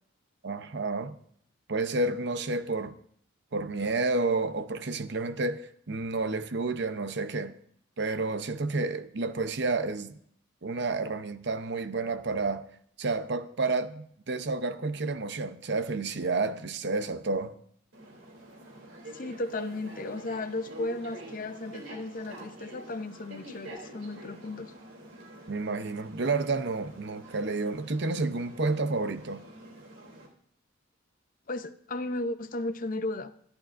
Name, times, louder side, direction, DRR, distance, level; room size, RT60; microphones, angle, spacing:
voice 1, 0.4-1.2 1.7-2.9 3.5-7.5 8.0-10.2 10.6-12.6 13.0-17.5 25.5-29.4, right 3 dB, 55° right, 0.7 m, -30 dB
sound 1, 17.9-30.3, right 1 dB, 70° right, 3.0 m, -47 dB
voice 2, 19.1-24.7 31.5-33.3, left 2 dB, 40° left, 0.6 m, -35 dB
25.0 x 11.5 x 2.6 m
head